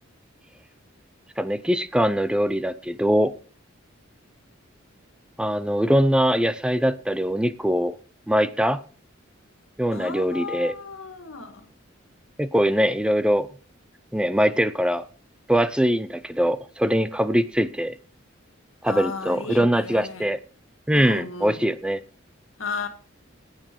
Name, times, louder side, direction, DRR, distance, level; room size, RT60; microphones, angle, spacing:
voice 1, 1.4-3.3 5.4-8.0 8.3-8.8 9.8-10.7 12.4-13.5 14.1-15.1 15.5-18.0 18.8-20.4 20.9-22.0, equal, 5° right, 13 dB, 0.6 m, -22 dB
voice 2, 9.9-11.7 18.8-20.3 20.9-21.6 22.6-22.9, left 4 dB, 80° left, 8 dB, 2.0 m, -34 dB
15.5 x 9.1 x 4.6 m, 0.38 s
head